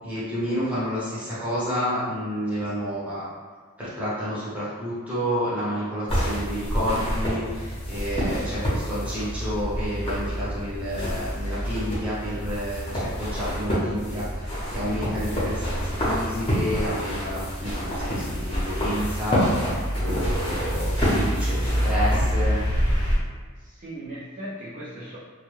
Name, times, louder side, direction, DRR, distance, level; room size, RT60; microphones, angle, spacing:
voice 1, 0.0-3.3 3.8-19.4 19.9-22.6, equal, 5° right, -10 dB, 0.8 m, -30 dB
sound 1, 6.1-23.2, equal, 25° left, 0.7 m, -26 dB
voice 2, 21.3-21.9 23.6-25.2, equal, 35° right, -9 dB, 0.5 m, -38 dB
2.3 x 2.2 x 3.0 m, 1.5 s
head